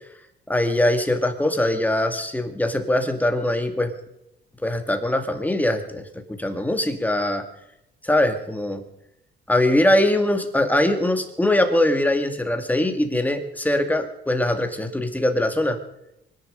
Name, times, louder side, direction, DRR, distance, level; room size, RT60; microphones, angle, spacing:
voice 1, 0.5-3.9 4.6-6.0 6.4-7.4 8.0-8.8 9.5-15.8, left 1 dB, 10° left, 6 dB, 2.3 m, -22 dB
24.5 x 10.5 x 5.2 m, 0.83 s
cardioid pair, 90°, 20 cm